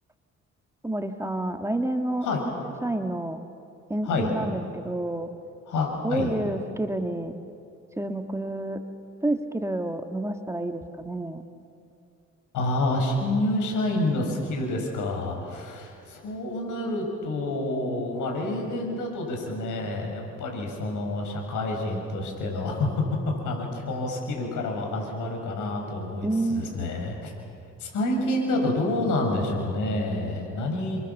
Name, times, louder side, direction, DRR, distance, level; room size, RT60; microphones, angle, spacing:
voice 1, 0.8-3.4 3.9-5.3 6.0-7.3 8.0-8.8 9.2-11.4 26.2-26.9 28.5-28.7, right 1 dB, 10° right, 6 dB, 1.5 m, -29 dB
voice 2, 5.7-6.3 12.5-27.3 27.8-31.0, left 2 dB, 85° left, 1 dB, 6.6 m, -28 dB
29.5 x 24.0 x 7.2 m, 2.5 s
cardioid pair, 90°, 30 cm